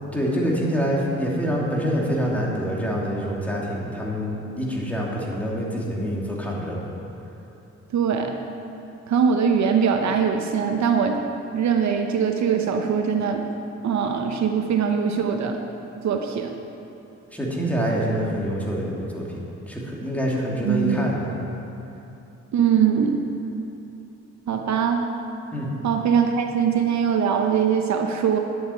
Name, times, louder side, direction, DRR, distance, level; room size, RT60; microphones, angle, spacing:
voice 1, 0.1-6.8 17.3-19.4 19.7-21.3 25.5-25.7, equal, 5° left, -4 dB, 3.0 m, -26 dB
voice 2, 7.9-8.3 9.1-11.2 11.5-13.5 13.8-15.6 16.0-16.5 20.6-21.1 22.5-23.2 24.5-25.1 25.8-28.4, right 7 dB, 65° right, 4 dB, 1.0 m, -22 dB
10.5 x 7.9 x 9.2 m, 2.9 s
cardioid pair, 90°, 30 cm